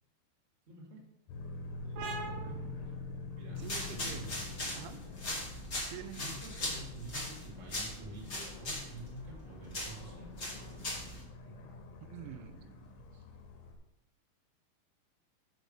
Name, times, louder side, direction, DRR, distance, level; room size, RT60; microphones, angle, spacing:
voice 1, 0.7-1.0 1.8-2.9 3.3-4.4 6.1-10.3 11.4-11.7 12.2-12.5 13.1-13.2, equal, 30° right, -2 dB, 1.1 m, -48 dB
sound 1, 1.3-13.8, left 3 dB, 85° left, 3.5 m, -47 dB
sound 2, 2.0-9.3, right 3 dB, 70° right, 2.1 m, -47 dB
sound 3, 3.5-11.2, left 1 dB, 70° left, 0.8 m, -40 dB
voice 2, 3.6-4.4 4.8-5.0 5.9-6.2 12.0-12.8, right 10 dB, 90° right, 11 dB, 3.0 m, -47 dB
7.1 x 5.3 x 6.4 m, 0.86 s
omnidirectional pair, 5.3 m